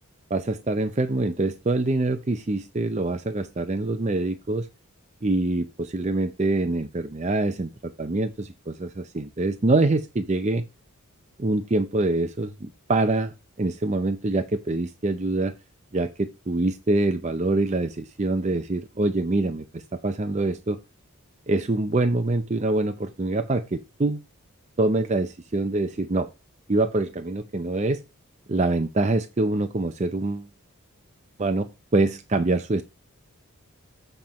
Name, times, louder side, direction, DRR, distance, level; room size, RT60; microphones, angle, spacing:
voice 1, 0.3-4.7 5.2-10.6 11.4-15.5 15.9-20.8 21.5-24.2 24.8-26.3 26.7-28.0 28.5-30.5 31.4-32.8, right 2 dB, 30° right, 0.5 m, -25 dB
7.6 x 4.4 x 5.1 m
head